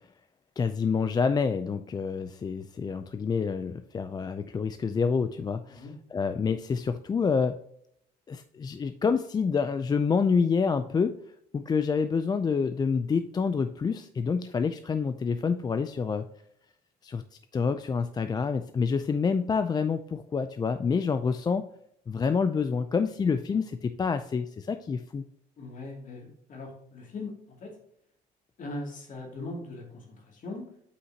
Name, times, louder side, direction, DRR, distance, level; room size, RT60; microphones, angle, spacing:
voice 1, 0.6-7.6 8.3-11.1 11.5-16.3 17.0-21.7 22.1-25.2, left 5 dB, 25° left, 9 dB, 0.4 m, -27 dB
voice 2, 25.6-27.8 28.6-30.7, left 2 dB, 50° left, 1 dB, 2.5 m, -40 dB
8.1 x 5.5 x 2.8 m, 0.70 s
cardioid pair, 110°, 17 cm